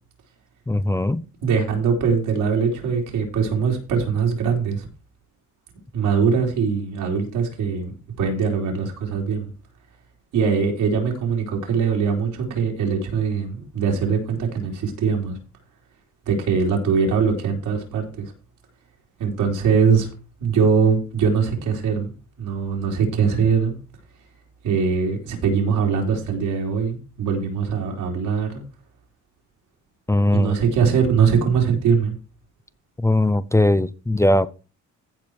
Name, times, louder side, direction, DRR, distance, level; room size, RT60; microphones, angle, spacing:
voice 1, 0.7-1.2 30.1-30.5 33.0-34.5, left 1 dB, 10° left, 0.5 m, -19 dB
voice 2, 1.4-4.9 5.9-9.5 10.3-15.4 16.3-18.3 19.2-20.1 20.4-22.1 22.4-23.8 24.6-28.6 30.3-32.1, right 6 dB, 85° right, 3.7 m, -22 dB
15.5 x 5.1 x 4.7 m
cardioid pair, 90°, 30 cm